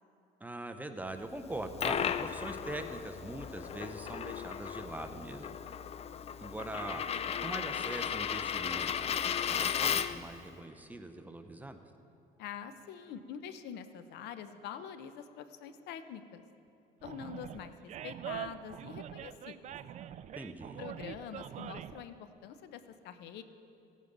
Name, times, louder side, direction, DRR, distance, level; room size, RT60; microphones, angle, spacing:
voice 1, 0.4-5.5 6.4-9.1 9.5-11.8 20.3-20.8, right 1 dB, 10° right, 7 dB, 0.7 m, -42 dB
Coin (dropping), 1.4-10.3, left 8 dB, 40° left, 0.4 m, -35 dB
voice 2, 12.4-16.4 17.0-19.7 20.8-23.4, left 8 dB, 80° left, 10 dB, 0.7 m, -45 dB
Animal, 17.0-22.0, right 10 dB, 45° right, 0.4 m, -44 dB
16.0 x 9.2 x 3.9 m, 2.8 s
cardioid pair, 110°, 17 cm